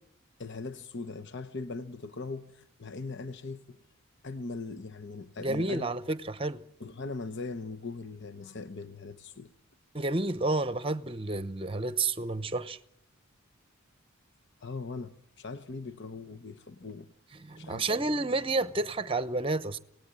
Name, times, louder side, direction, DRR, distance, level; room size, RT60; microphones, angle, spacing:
voice 1, 0.4-3.8 4.2-5.9 6.8-9.5 14.6-17.1 17.6-17.8, left 3 dB, 55° left, 0.9 m, -40 dB
voice 2, 5.4-6.6 9.9-12.8 17.4-19.8, right 2 dB, 25° right, 0.9 m, -30 dB
26.0 x 19.0 x 8.9 m
head